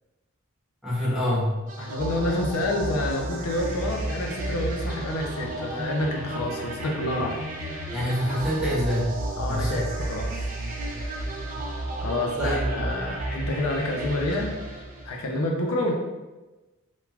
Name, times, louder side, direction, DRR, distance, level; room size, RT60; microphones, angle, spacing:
voice 1, 0.8-1.6 7.9-9.1 9.5-9.9 12.4-12.9, equal, 5° right, -8 dB, 0.7 m, -26 dB
sound 1, 1.7-15.3, right 1 dB, 35° right, 0.4 m, -32 dB
voice 2, 1.8-7.4 9.4-9.8 10.1-10.2 12.0-14.6 15.1-15.9, left 1 dB, 80° left, 0 dB, 0.5 m, -28 dB
3.2 x 2.2 x 2.3 m, 1.1 s
head